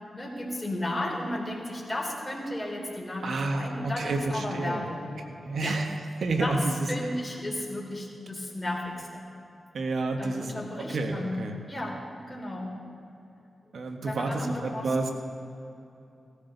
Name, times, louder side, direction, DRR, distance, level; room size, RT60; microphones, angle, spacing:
voice 1, 0.1-5.1 5.6-5.8 6.4-6.6 6.9-9.3 10.2-11.4 11.7-12.8 14.0-14.9, left 1 dB, 20° left, -2 dB, 4.1 m, -34 dB
voice 2, 3.2-4.9 5.3-5.9 6.2-6.9 9.7-11.6 13.7-15.1, right 2 dB, 70° right, 4 dB, 1.3 m, -30 dB
17.0 x 14.5 x 4.0 m, 2.8 s
cardioid pair, 50°, 0 cm